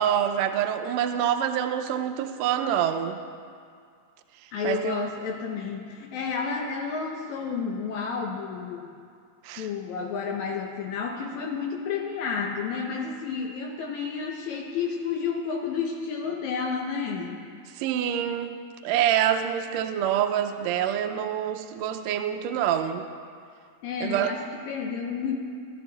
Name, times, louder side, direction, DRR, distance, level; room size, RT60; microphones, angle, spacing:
voice 1, 0.0-3.2 4.6-5.1 9.4-9.7 17.8-18.6 18.8-23.0 24.0-24.3, right 10 dB, 80° right, 6 dB, 1.6 m, -26 dB
voice 2, 4.5-8.9 9.6-17.5 23.8-25.3, left 5 dB, 75° left, 0 dB, 2.1 m, -31 dB
17.5 x 11.5 x 2.3 m, 2.2 s
omnidirectional pair, 3.4 m